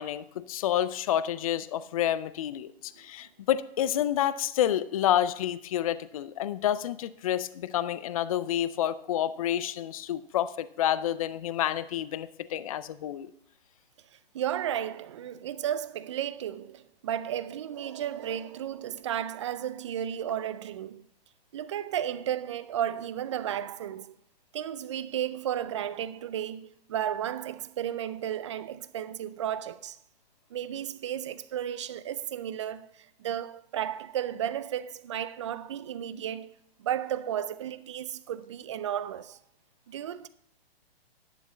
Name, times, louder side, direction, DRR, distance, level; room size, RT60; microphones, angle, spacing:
voice 1, 0.0-13.3, left 11 dB, 35° left, 0.4 m, -29 dB
voice 2, 14.3-21.0 21.5-24.1 24.5-30.0 30.5-36.5 36.8-39.4 39.9-40.3, right 10 dB, 30° right, 0.4 m, -33 dB
11.0 x 7.1 x 4.2 m
hypercardioid pair, 140°, 30 cm